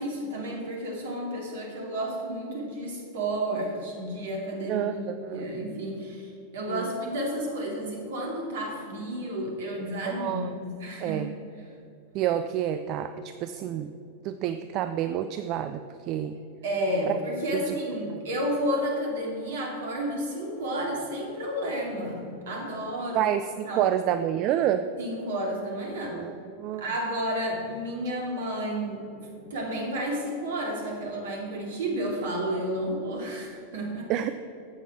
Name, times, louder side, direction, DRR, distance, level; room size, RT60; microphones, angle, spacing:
voice 1, 0.0-10.5 10.8-11.3 16.6-23.3 23.6-23.9 25.0-26.2 26.8-34.1, equal, 60° right, 0 dB, 2.6 m, -31 dB
voice 2, 4.7-5.4 6.7-6.9 10.0-10.5 11.0-11.3 12.1-13.9 14.2-16.4 17.5-17.8 23.1-24.9 26.1-26.9 34.1-34.3, right 11 dB, 40° right, 10 dB, 0.4 m, -28 dB
13.0 x 8.2 x 4.5 m, 2.8 s
figure-of-eight pair, 90°, 0 cm